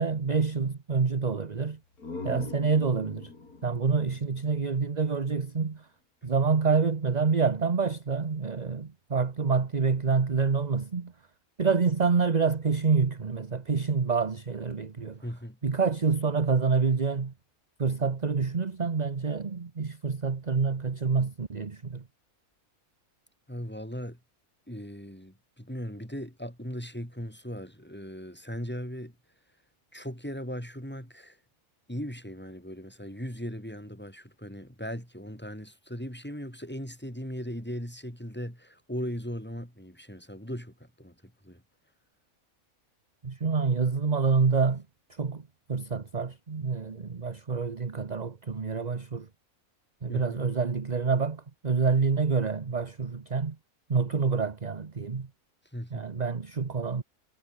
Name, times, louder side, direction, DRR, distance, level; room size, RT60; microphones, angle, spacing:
voice 1, 0.0-1.8 2.2-3.3 3.6-5.8 6.2-11.1 11.6-15.2 15.6-17.3 17.8-22.0 43.2-44.8 45.2-45.4 45.7-49.3 50.0-53.6 53.9-55.3 55.9-57.0, right 5 dB, 30° right, 1.1 m, -27 dB
sound 1, 1.7-5.4, left 3 dB, 85° left, 4.3 m, -43 dB
voice 2, 15.2-15.6 23.5-24.2 24.7-29.1 29.9-31.4 31.9-41.6 50.1-50.5 55.7-56.1, equal, 5° left, 5.4 m, -38 dB
omnidirectional pair, 1.5 m